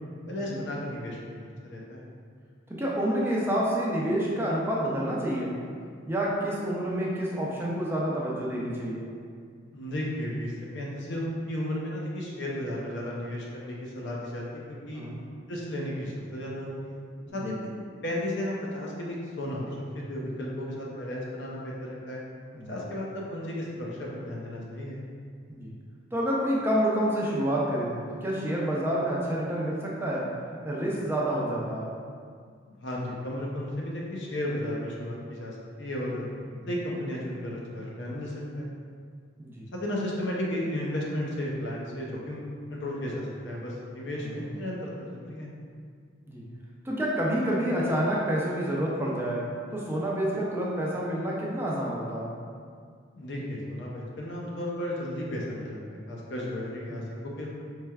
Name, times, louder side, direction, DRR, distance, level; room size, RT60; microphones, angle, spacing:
voice 1, 0.3-2.0 9.7-15.0 15.5-17.0 17.3-17.7 18.0-22.2 22.7-25.0 32.6-36.2 36.7-38.7 39.7-42.4 42.7-45.5 53.1-57.5, left 1 dB, 65° left, -4 dB, 0.6 m, -34 dB
voice 2, 2.7-5.5 6.1-9.1 14.9-15.2 17.3-17.4 22.5-22.7 25.5-25.7 26.1-27.9 28.2-30.3 30.6-31.9 36.4-36.6 39.4-39.7 44.2-44.4 46.3-46.4 46.8-52.3 56.9-57.0, right 1 dB, 10° right, -5 dB, 0.4 m, -28 dB
4.3 x 3.2 x 2.3 m, 2.1 s
head